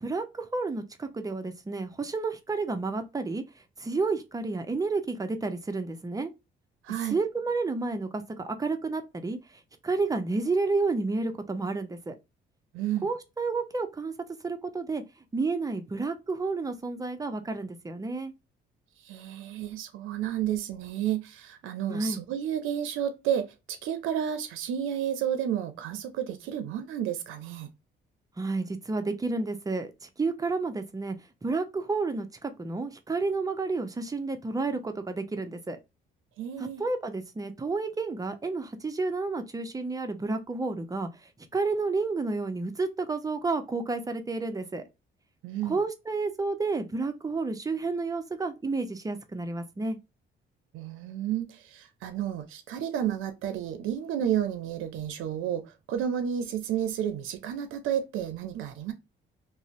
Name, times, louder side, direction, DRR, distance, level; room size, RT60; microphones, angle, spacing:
voice 1, 0.0-3.4 3.8-6.3 7.0-9.4 9.8-12.1 13.0-14.1 14.4-15.0 15.3-18.3 21.9-22.2 28.4-31.2 31.4-35.8 36.6-41.1 41.5-44.8 45.7-50.0, right 3 dB, 20° right, 0.4 m, -30 dB
voice 2, 6.8-7.2 12.7-13.1 19.0-27.7 36.4-36.8 45.4-45.8 50.7-58.9, right 10 dB, 85° right, 0.5 m, -31 dB
2.5 x 2.0 x 2.8 m
cardioid pair, 90°, 20 cm